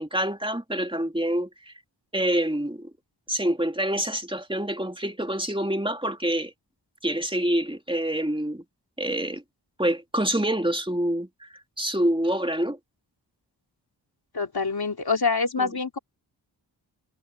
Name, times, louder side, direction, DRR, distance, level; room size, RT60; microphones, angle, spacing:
voice 1, 0.0-1.7 2.1-2.9 3.3-6.5 7.0-8.6 9.0-9.4 9.8-12.8 15.6-15.7, right 1 dB, 10° right, 3.0 m, -26 dB
voice 2, 14.3-16.0, left 4 dB, 55° left, 3.1 m, -25 dB
cardioid pair, 45°, 44 cm